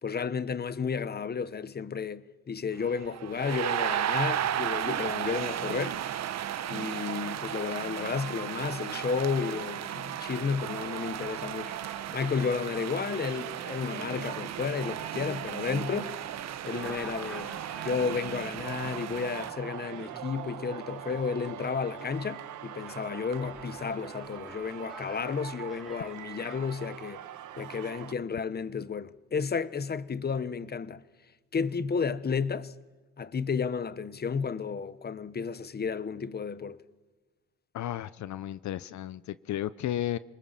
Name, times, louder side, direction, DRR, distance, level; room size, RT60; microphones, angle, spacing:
voice 1, 0.0-6.0 6.7-11.8 12.1-16.1 16.6-17.6 17.8-27.2 27.6-31.0 31.5-32.7 33.2-36.8, left 5 dB, 35° left, 1.1 m, -32 dB
sound 1, 2.8-19.5, right 10 dB, 60° right, 1.2 m, -35 dB
Singing, 10.6-28.1, right 11 dB, 80° right, 1.5 m, -42 dB
sound 2, 11.8-12.3 12.8-21.8 22.0-22.2 22.7-26.6, right 1 dB, ahead, 4.5 m, -50 dB
voice 2, 37.7-40.2, left 12 dB, 70° left, 0.8 m, -33 dB
27.5 x 20.0 x 7.5 m
cardioid pair, 90°, 30 cm